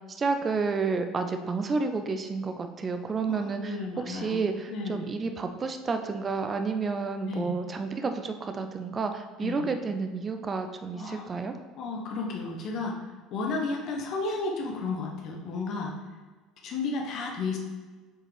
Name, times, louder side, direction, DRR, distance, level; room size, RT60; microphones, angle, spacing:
voice 1, 0.1-3.8 4.1-11.5, right 4 dB, 30° right, 7 dB, 0.5 m, -30 dB
voice 2, 3.3-5.1 7.3-7.5 9.4-9.7 10.9-11.3 11.8-13.0 13.3-15.9 16.6-17.6, left 3 dB, 45° left, 1 dB, 1.1 m, -33 dB
7.6 x 5.0 x 3.3 m, 1.4 s
figure-of-eight pair, 65°, 0 cm